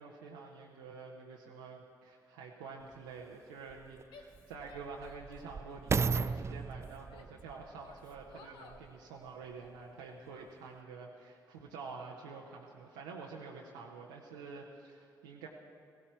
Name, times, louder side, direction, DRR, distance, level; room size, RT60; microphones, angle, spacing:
voice 1, 0.0-15.5, right 4 dB, 85° right, -3 dB, 0.9 m, -48 dB
sound 1, 2.9-3.0 3.7-9.0 9.6-9.7, right 5 dB, 30° right, 0.3 m, -36 dB
Female speech woman speaking / Yell, 4.1-5.4 5.9-7.4 7.8-8.9, left 4 dB, 70° left, 1.2 m, -57 dB
17.0 x 16.0 x 4.6 m, 2.4 s
hypercardioid pair, 45°, 9 cm